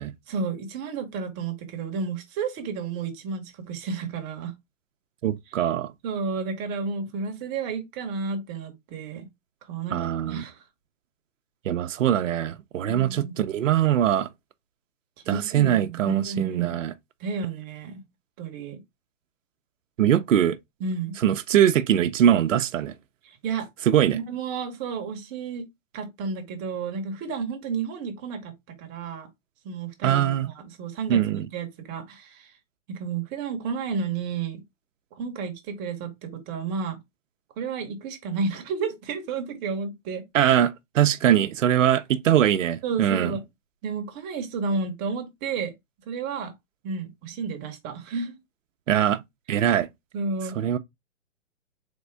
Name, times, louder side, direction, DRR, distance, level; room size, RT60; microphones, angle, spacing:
voice 1, 0.3-4.5 6.0-9.3 9.7-10.6 12.9-13.4 15.2-16.8 17.2-18.0 18.4-18.8 20.8-21.2 23.2-23.7 24.1-25.7 25.9-28.5 28.8-29.3 29.6-32.5 32.9-34.6 35.1-37.0 37.6-40.2 41.2-41.4 42.8-43.4 43.8-45.7 46.1-46.5 46.8-48.4 50.1-50.5, right 5 dB, 25° right, 1.1 m, -31 dB
voice 2, 5.2-5.9 9.9-10.4 11.7-14.3 15.3-16.9 20.0-20.6 21.2-22.9 23.9-24.2 30.0-30.5 31.1-31.4 40.3-43.3 48.9-49.2 49.5-49.9 50.6-50.8, right 10 dB, 70° right, 0.7 m, -22 dB
4.0 x 3.6 x 3.3 m
hypercardioid pair, 140°, 40 cm